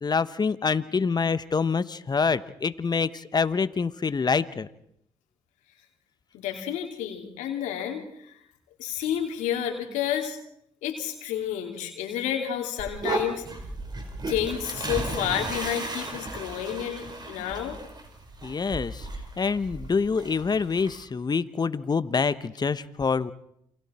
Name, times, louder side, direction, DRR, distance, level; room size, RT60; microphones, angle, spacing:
voice 1, 0.0-4.7 18.4-19.1 19.4-23.3, left 5 dB, 35° left, 14 dB, 1.2 m, -26 dB
voice 2, 6.3-8.0 8.8-10.4 10.8-13.5 14.3-17.8, left 10 dB, 80° left, 3 dB, 3.0 m, -30 dB
sound 1, 12.8-21.0, right 2 dB, 35° right, 4.7 m, -35 dB
29.0 x 25.0 x 4.4 m, 0.74 s
supercardioid pair, 55°, 12 cm